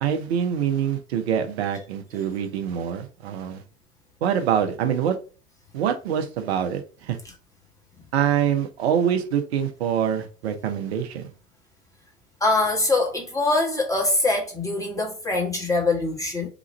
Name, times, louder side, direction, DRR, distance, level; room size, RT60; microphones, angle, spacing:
voice 1, 0.0-3.6 4.2-5.2 5.7-7.2 8.1-11.3, right 8 dB, 75° right, 0.8 m, -25 dB
voice 2, 12.4-16.5, left 2 dB, 10° left, 1.4 m, -23 dB
3.0 x 2.5 x 3.9 m
hypercardioid pair, 85°, 32 cm